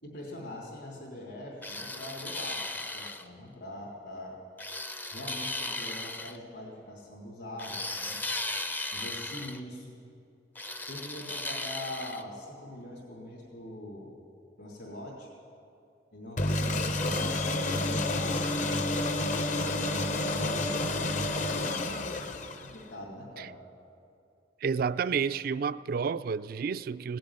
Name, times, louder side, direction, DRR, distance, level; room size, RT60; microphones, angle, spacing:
voice 1, 0.0-4.4 5.1-8.2 8.9-9.9 10.8-14.2 14.6-15.3 16.1-19.2 19.6-21.7 22.6-23.6, left 1 dB, 70° left, 3.1 m, -43 dB
sound 1, 1.6-3.3 4.6-6.4 7.6-9.6 10.6-12.2, left 2 dB, 10° left, 0.5 m, -36 dB
sound 2, 16.4-22.9, left 2 dB, 45° left, 0.7 m, -29 dB
voice 2, 24.6-27.2, right 6 dB, 55° right, 0.3 m, -30 dB
17.5 x 7.7 x 9.8 m
head